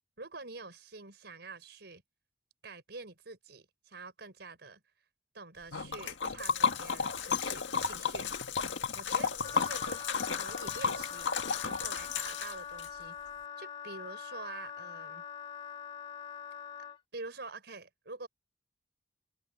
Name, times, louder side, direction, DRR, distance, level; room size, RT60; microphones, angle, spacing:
voice 1, 0.2-2.0 2.6-4.8 5.3-8.5 8.9-11.3 11.6-13.2 13.6-15.2 17.1-18.3, right 3 dB, 65° right, 5.8 m, -46 dB
Liquid, 5.7-12.9, left 6 dB, 90° left, 1.8 m, -33 dB
Wind instrument woodwind instrument, 9.4-17.0, left 8 dB, 30° left, 1.9 m, -44 dB
open air
head